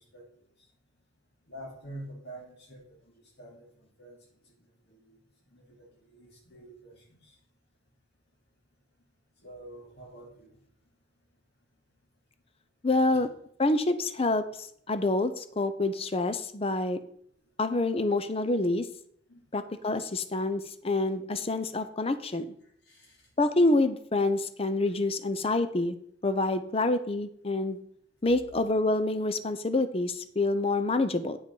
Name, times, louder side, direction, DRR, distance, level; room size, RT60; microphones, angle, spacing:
voice 1, 1.5-3.7 4.0-4.2 4.9-5.2 5.5-7.3 9.4-10.5 19.3-19.5 22.9-23.1, right 1 dB, 55° left, -2 dB, 2.5 m, -47 dB
voice 2, 12.8-13.3 13.6-17.0 17.6-18.9 19.5-22.5 23.4-26.0 26.2-27.8 28.2-31.4, left 2 dB, 30° left, 11 dB, 0.6 m, -27 dB
9.0 x 5.2 x 5.4 m, 0.66 s
head